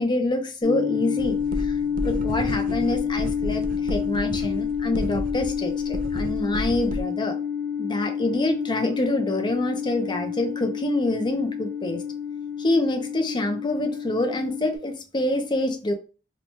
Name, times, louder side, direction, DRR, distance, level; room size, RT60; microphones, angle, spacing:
voice 1, 0.0-1.7 2.0-7.4 7.8-12.0 12.6-15.9, left 1 dB, 25° left, 0.5 m, -26 dB
sound 1, 0.6-14.8, left 7 dB, 55° left, 1.3 m, -29 dB
sound 2, 1.2-7.0, right 1 dB, 50° right, 0.4 m, -32 dB
3.0 x 2.2 x 4.0 m
head